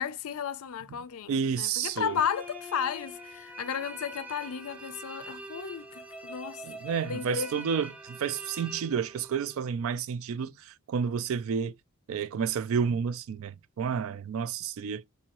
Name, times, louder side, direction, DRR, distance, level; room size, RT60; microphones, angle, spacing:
voice 1, 0.0-6.6 7.0-7.5, left 8 dB, 75° left, 0.4 m, -34 dB
voice 2, 1.3-2.2 6.6-11.7 12.1-15.0, right 6 dB, 70° right, 0.3 m, -30 dB
sound 1, 1.9-9.6, right 1 dB, 5° right, 0.5 m, -44 dB
3.8 x 2.7 x 2.9 m
head